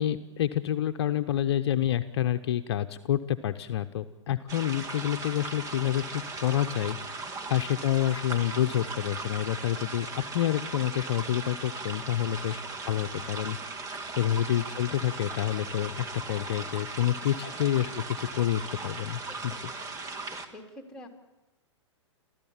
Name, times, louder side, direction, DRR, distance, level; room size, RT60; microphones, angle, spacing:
voice 1, 0.0-13.6 14.2-19.5, left 11 dB, 55° left, 9 dB, 0.9 m, -28 dB
sound 1, 4.5-20.5, right 3 dB, 20° right, 1.7 m, -38 dB
voice 2, 7.3-7.6 12.1-12.4 17.4-17.6 19.1-21.1, left 2 dB, 5° left, 2 dB, 3.5 m, -50 dB
29.0 x 14.0 x 7.4 m, 1.0 s
hypercardioid pair, 120°, 16 cm